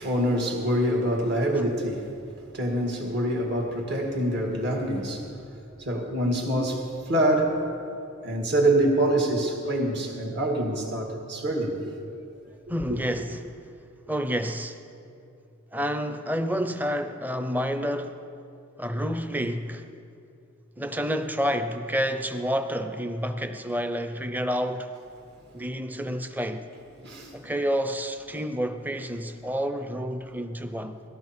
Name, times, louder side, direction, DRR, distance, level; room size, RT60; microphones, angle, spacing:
voice 1, 0.0-2.1 2.5-7.8 8.2-12.0 12.9-13.0 27.0-27.4, right 1 dB, 55° right, 2.1 m, -26 dB
voice 2, 12.7-13.6 14.1-14.8 15.7-18.2 18.8-19.9 20.8-24.9 25.5-26.7 27.3-31.0, equal, 10° right, 0.6 m, -29 dB
19.0 x 14.5 x 4.4 m
head